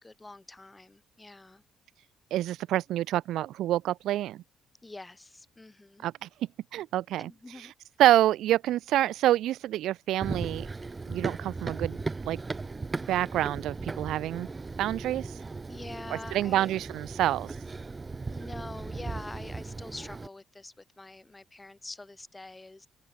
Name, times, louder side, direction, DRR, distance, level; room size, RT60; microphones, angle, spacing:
voice 1, 0.0-1.6 4.8-6.1 7.2-7.7 15.7-16.7 18.3-22.9, left 2 dB, 15° left, 2.6 m, -45 dB
voice 2, 2.3-4.4 6.0-6.3 6.7-7.3 8.0-10.7 11.1-12.4 13.1-14.5 14.8-15.3 16.3-17.5, right 13 dB, 85° right, 0.7 m, -27 dB
Run, 10.2-20.3, right 3 dB, 25° right, 3.6 m, -37 dB
open air
cardioid pair, 90°, 0 cm